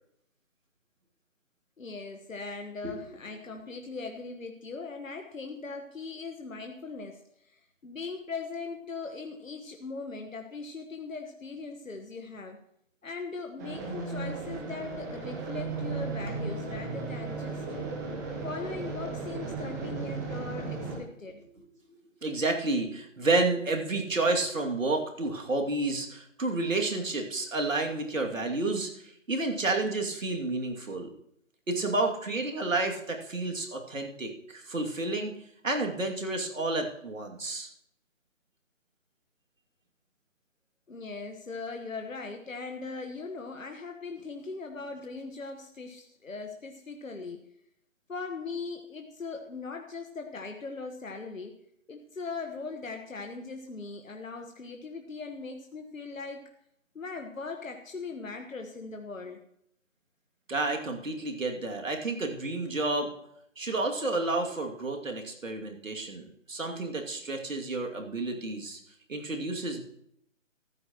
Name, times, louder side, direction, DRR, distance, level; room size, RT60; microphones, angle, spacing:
voice 1, 1.8-12.6 13.0-17.8 18.4-21.4 40.9-47.5 48.1-51.6 51.9-56.5 56.9-59.4, left 4 dB, 80° left, 4 dB, 1.4 m, -40 dB
sound 1, 13.6-21.0, right 4 dB, 15° right, 1.1 m, -35 dB
voice 2, 22.2-31.1 31.7-35.3 35.6-37.7 60.5-63.1 63.6-68.8 69.1-69.8, right 2 dB, 75° right, 2 dB, 2.6 m, -30 dB
14.5 x 13.0 x 3.0 m, 0.73 s
figure-of-eight pair, 150°, 39 cm